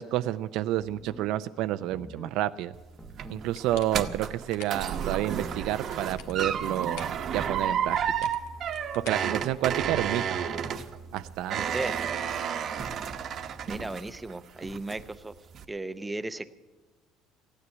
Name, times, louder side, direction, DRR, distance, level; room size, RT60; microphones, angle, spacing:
voice 1, 0.0-2.7 3.3-8.3 9.0-10.4 11.1-11.7, right 13 dB, 70° right, 11 dB, 0.4 m, -30 dB
sound 1, 0.8-1.3 1.9-2.4 3.0-3.5 5.2-5.7 6.3-6.8 7.3-7.9, equal, 5° left, 1.0 m, -47 dB
sound 2, 2.7-14.3 14.6-15.1 15.5-15.6, right 8 dB, 40° right, 1.0 m, -31 dB
sound 3, 3.5-5.0 5.7-7.2 8.0-10.0, left 8 dB, 80° left, 1.5 m, -48 dB
voice 2, 13.7-15.4 15.7-16.5, right 2 dB, 10° right, 12 dB, 0.6 m, -35 dB
15.5 x 9.7 x 9.0 m, 1.2 s
cardioid pair, 155°, 0 cm